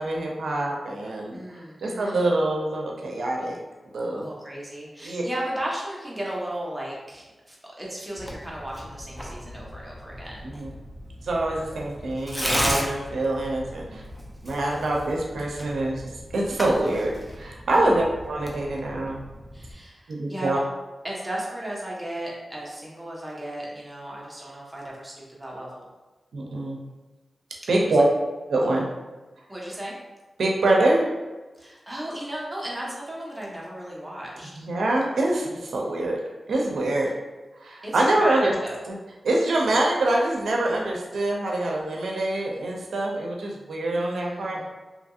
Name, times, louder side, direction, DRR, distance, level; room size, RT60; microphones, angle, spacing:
voice 1, 0.0-1.4 1.8-3.6 3.9-4.3 5.0-5.2 10.4-10.7 11.2-14.0 14.4-17.1 17.4-19.3 20.1-20.6 26.3-26.8 27.7-28.1 28.5-28.9 30.4-31.1 34.6-36.2 36.5-37.1 37.6-38.5 38.9-39.0 39.2-44.7, right 2 dB, 85° right, -1 dB, 0.5 m, -25 dB
voice 2, 1.3-2.2 4.1-10.5 19.5-20.6 21.0-25.9 27.8-28.0 29.5-29.9 31.6-34.5 37.8-38.8 44.0-44.7, right 1 dB, 15° right, -4 dB, 0.9 m, -35 dB
Tearing, 8.2-19.7, equal, ahead, 0.5 m, -35 dB
2.8 x 2.6 x 2.4 m, 1.2 s
cardioid pair, 50°, 0 cm